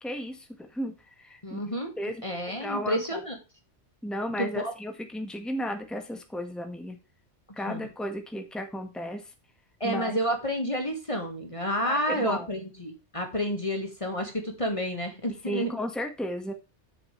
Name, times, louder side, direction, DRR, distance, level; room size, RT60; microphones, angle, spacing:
voice 1, 0.0-1.6 2.0-3.2 4.0-7.0 7.6-9.2 9.8-10.2 11.8-12.5 15.5-16.5, equal, ahead, 4 dB, 1.7 m, -34 dB
voice 2, 1.4-1.9 2.2-3.4 4.4-4.7 7.7-7.8 9.8-15.7, equal, 30° left, 3 dB, 1.9 m, -30 dB
10.0 x 8.0 x 3.4 m, 0.29 s
omnidirectional pair, 1.2 m